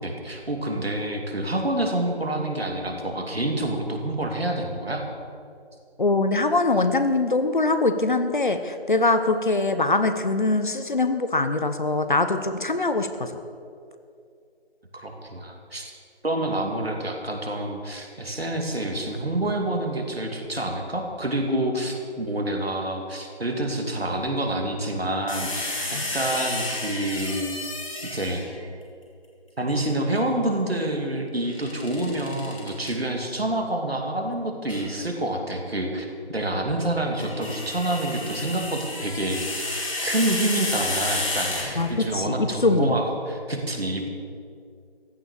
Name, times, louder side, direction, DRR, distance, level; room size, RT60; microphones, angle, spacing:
voice 1, 0.0-5.0 14.9-15.9 16.2-27.4 28.1-28.4 29.6-44.1, right 1 dB, 70° right, 2 dB, 2.7 m, -27 dB
voice 2, 6.0-13.3 25.9-26.0 41.8-43.0, left 3 dB, 50° left, 9 dB, 1.0 m, -23 dB
sound 1, 25.3-28.6 31.5-32.9 34.7-34.9 37.0-42.1, left 2 dB, 30° left, 2.6 m, -31 dB
15.0 x 10.5 x 6.8 m, 2.4 s
figure-of-eight pair, 165°, 32 cm